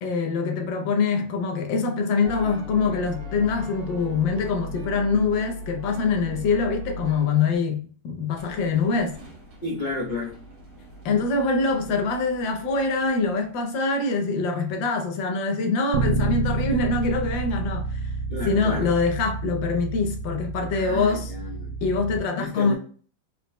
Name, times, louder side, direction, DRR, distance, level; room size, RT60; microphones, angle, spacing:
voice 1, 0.0-9.1 11.0-18.1 18.4-21.3 21.8-22.7, left 4 dB, 75° left, 1.5 m, -24 dB
sound 1, 2.2-7.6, left 1 dB, 55° right, 1.5 m, -37 dB
sound 2, 8.3-13.8, right 1 dB, 40° right, 1.2 m, -47 dB
voice 2, 9.6-10.4 18.3-18.9 20.7-21.7 22.3-22.7, left 3 dB, 35° left, 0.7 m, -31 dB
Bass guitar, 15.9-22.2, right 3 dB, 75° right, 1.3 m, -29 dB
4.2 x 4.2 x 2.2 m
omnidirectional pair, 2.1 m